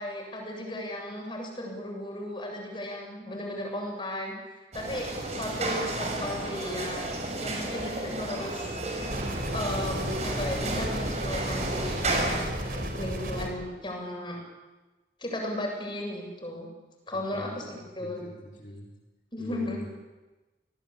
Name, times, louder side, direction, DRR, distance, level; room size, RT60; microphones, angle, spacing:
voice 1, 0.0-4.3 4.7-5.1 5.4-7.1 7.4-9.2 9.5-14.4 15.2-16.7 17.1-18.2 19.3-19.8, left 1 dB, 25° left, 0 dB, 7.8 m, -35 dB
sound 1, 4.7-12.4, right 2 dB, 40° right, 6.4 m, -32 dB
voice 2, 5.2-5.8 17.3-18.9 19.4-19.9, equal, 45° left, -4 dB, 4.1 m, -44 dB
sound 2, 9.1-13.5, equal, 55° right, 4.9 m, -33 dB
26.5 x 19.5 x 8.8 m, 1.2 s
head